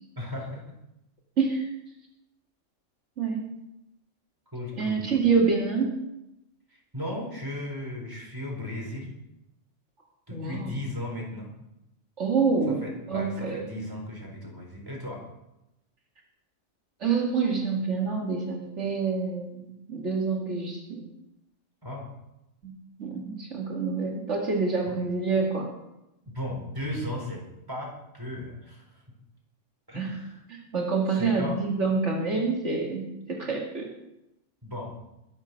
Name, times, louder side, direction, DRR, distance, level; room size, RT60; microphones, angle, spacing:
voice 1, 0.2-0.6 4.5-5.3 6.9-9.1 10.3-11.5 12.7-15.2 21.8-22.1 24.9-25.0 26.2-27.4 27.7-28.8 29.9-30.3 31.1-31.6 34.6-34.9, left 1 dB, 15° right, -2 dB, 4.6 m, -36 dB
voice 2, 1.4-1.7 3.2-3.5 4.8-6.0 10.3-10.7 12.2-13.7 17.0-21.1 22.6-22.7 23.0-25.7 29.9-30.1 30.5-33.9, right 4 dB, 70° right, -1 dB, 2.6 m, -27 dB
21.5 x 7.2 x 6.9 m, 0.88 s
omnidirectional pair, 1.3 m